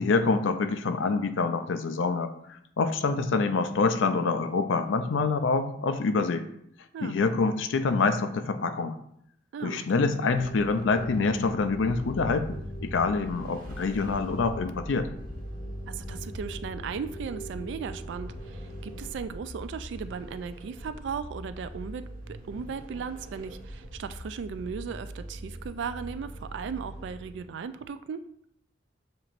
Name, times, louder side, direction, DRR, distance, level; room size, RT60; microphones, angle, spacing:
voice 1, 0.0-6.4 7.0-9.0 9.6-15.1, left 4 dB, 90° left, 9 dB, 0.4 m, -26 dB
voice 2, 9.5-10.1 15.9-28.2, right 6 dB, 70° right, 12 dB, 0.3 m, -37 dB
sound 1, 10.3-19.1, left 1 dB, 60° left, 0.7 m, -42 dB
Vehicle, 11.6-27.6, right 1 dB, 50° right, 1.1 m, -42 dB
7.0 x 3.0 x 2.5 m, 0.72 s
head